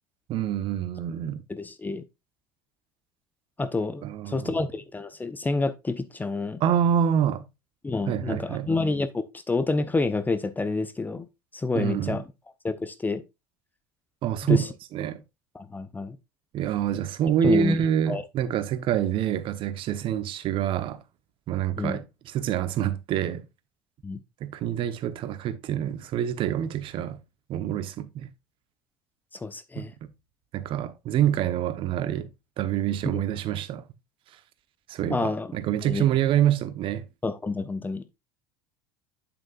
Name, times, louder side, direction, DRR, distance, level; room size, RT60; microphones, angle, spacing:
voice 1, 0.3-1.4 4.0-4.5 6.6-7.4 8.1-8.7 11.8-12.2 14.2-14.6 14.9-15.2 16.5-21.0 21.5-22.0 22.3-23.5 24.4-27.2 27.5-28.3 29.8-30.1 30.5-32.3 32.6-33.8 34.9-37.0, right 10 dB, 50° right, 1.1 m, -26 dB
voice 2, 1.5-2.0 3.6-6.6 7.8-11.3 11.5-12.2 12.6-13.2 14.4-14.7 15.5-16.2 17.4-17.8 18.1-18.2 21.8-22.0 24.0-24.2 29.3-29.9 33.1-33.2 35.1-35.5 35.8-36.0 37.2-38.0, left 3 dB, 15° left, 0.8 m, -28 dB
8.0 x 7.3 x 2.5 m
hypercardioid pair, 75°, 11 cm